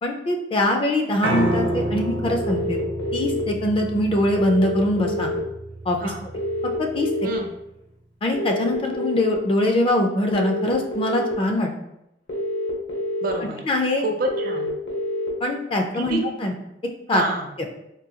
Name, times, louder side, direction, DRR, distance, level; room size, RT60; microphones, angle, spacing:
voice 1, 0.0-2.8 3.1-5.3 5.9-6.1 6.8-7.1 8.2-11.7 13.6-14.0 15.4-16.5 17.1-17.2, left 1 dB, 30° left, 2 dB, 0.4 m, -22 dB
Piano, 1.2-7.4, right 1 dB, 75° right, 0.8 m, -29 dB
sound 1, 2.4-3.4 4.4-5.4 6.3-7.4 8.3-9.3 10.3-11.3 12.3-13.3 14.3-15.3, left 1 dB, 70° left, 0.8 m, -27 dB
voice 2, 13.2-13.6 14.0-14.7 15.9-16.2 17.1-17.5, right 2 dB, 55° right, 3 dB, 0.5 m, -27 dB
3.8 x 2.3 x 2.7 m, 0.83 s
head